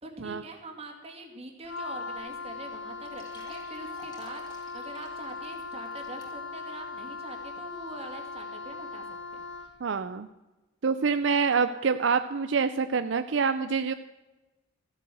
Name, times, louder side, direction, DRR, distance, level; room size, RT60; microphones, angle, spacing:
voice 1, 0.0-9.0 9.3-9.4, right 2 dB, 30° right, 3 dB, 2.4 m, -44 dB
Wind instrument woodwind instrument, 1.6-9.8, left 4 dB, 90° left, 1.4 m, -39 dB
sound 1, 2.2-2.3 2.5-2.6 3.0-6.6 7.1-7.2 7.8-7.9, left 1 dB, 20° left, 3.6 m, -53 dB
voice 2, 9.8-10.3 10.8-13.9, right 5 dB, 70° right, 10 dB, 0.5 m, -26 dB
14.5 x 8.0 x 7.8 m, 1.1 s
head